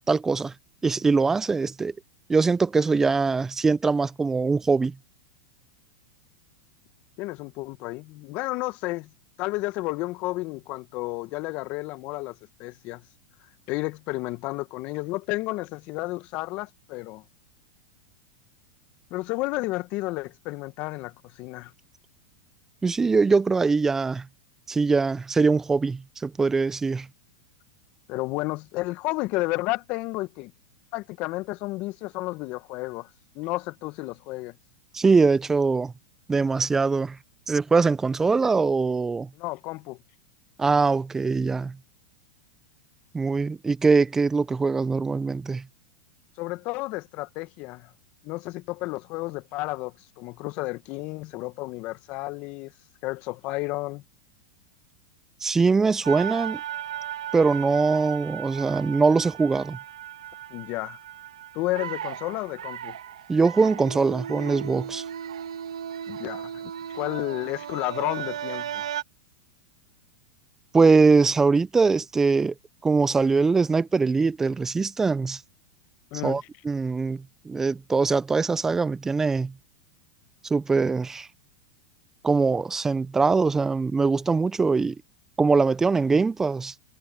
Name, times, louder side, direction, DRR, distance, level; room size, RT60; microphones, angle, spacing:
voice 1, 0.1-0.5 0.8-1.9 2.3-4.9 22.8-24.3 24.7-27.1 34.9-35.9 36.3-37.2 37.5-39.3 40.6-41.8 43.1-45.6 55.4-56.6 57.3-59.8 63.3-65.0 70.7-72.5 72.8-75.4 76.2-79.5 80.5-81.3 82.2-85.0 85.4-86.7, right 4 dB, 15° right, 0.5 m, -22 dB
voice 2, 7.2-9.1 9.4-13.0 13.7-17.2 19.1-21.7 28.1-30.5 30.9-33.1 33.3-34.5 39.3-40.0 46.4-47.9 48.2-52.7 53.0-54.0 60.5-61.0 61.5-63.0 66.1-68.8 76.1-76.4, left 21 dB, 50° left, 1.5 m, -32 dB
sound 1, 56.0-69.0, right 10 dB, 85° right, 1.7 m, -36 dB
hypercardioid pair, 115°, 3 cm